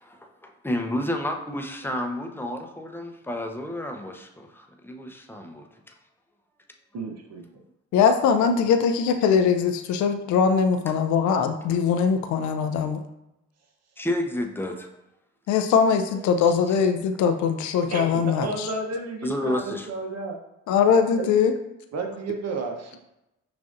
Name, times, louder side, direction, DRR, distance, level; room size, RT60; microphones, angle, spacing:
voice 1, 0.2-5.9 14.0-14.9 19.2-19.9, left 1 dB, 5° left, 4 dB, 0.7 m, -30 dB
voice 2, 6.9-7.6 17.9-20.4 21.2-21.3 21.9-23.0, right 3 dB, 55° right, 3 dB, 0.9 m, -32 dB
voice 3, 7.9-13.0 15.5-18.7 20.7-21.5, left 6 dB, 65° left, 7 dB, 0.5 m, -21 dB
5.8 x 2.6 x 2.5 m, 0.89 s
hypercardioid pair, 50°, 31 cm